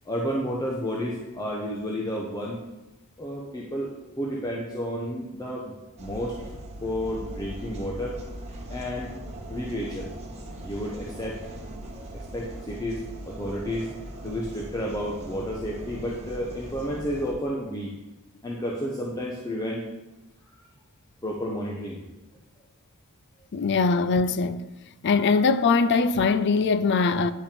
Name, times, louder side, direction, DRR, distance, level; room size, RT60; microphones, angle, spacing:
voice 1, 0.1-2.6 3.2-3.9 4.2-5.7 6.0-6.4 6.8-8.2 8.7-9.1 9.5-10.1 10.6-11.4 12.3-13.9 14.2-17.9 18.4-19.8 21.2-22.0, equal, 15° left, 1.0 m, -31 dB
sound 1, 6.0-17.3, right 1 dB, 30° right, 1.5 m, -40 dB
voice 2, 23.5-24.7 25.0-27.3, left 4 dB, 50° left, 0.5 m, -22 dB
10.5 x 6.0 x 5.2 m
head